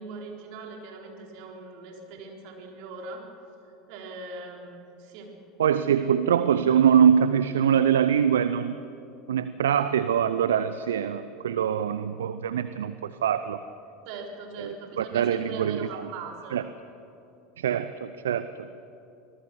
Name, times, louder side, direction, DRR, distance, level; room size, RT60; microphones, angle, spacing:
voice 1, 0.0-3.2 3.9-5.3 6.2-6.5 14.1-16.6, right 3 dB, 60° right, 1 dB, 4.3 m, -41 dB
voice 2, 5.6-8.8 9.3-13.6 14.6-16.1 16.5-16.6 17.6-18.5, right 8 dB, 75° right, 13 dB, 0.6 m, -23 dB
25.5 x 19.0 x 6.4 m, 2.8 s
figure-of-eight pair, 75°, 0 cm